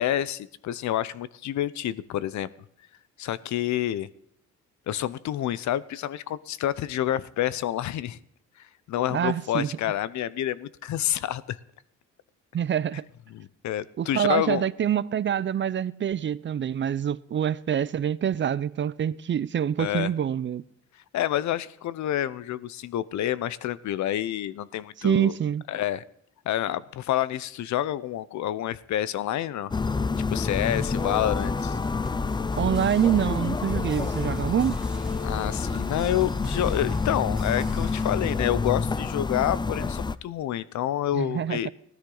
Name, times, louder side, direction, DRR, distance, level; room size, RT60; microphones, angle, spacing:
voice 1, 0.0-2.5 3.2-4.1 4.9-8.2 8.6-11.6 13.3-14.6 19.8-20.1 21.1-25.4 25.7-26.0 26.5-29.7 30.3-31.8 35.2-41.7, left 12 dB, 70° left, 0.7 m, -28 dB
voice 2, 9.1-9.7 12.5-13.0 14.0-20.6 25.0-25.6 32.6-34.8 41.1-41.7, right 9 dB, 40° right, 0.5 m, -26 dB
sound 1, 29.7-40.2, left 4 dB, 15° left, 0.4 m, -28 dB
sound 2, 30.9-38.3, right 1 dB, ahead, 2.1 m, -46 dB
16.0 x 13.0 x 3.9 m
cardioid pair, 90°, 30 cm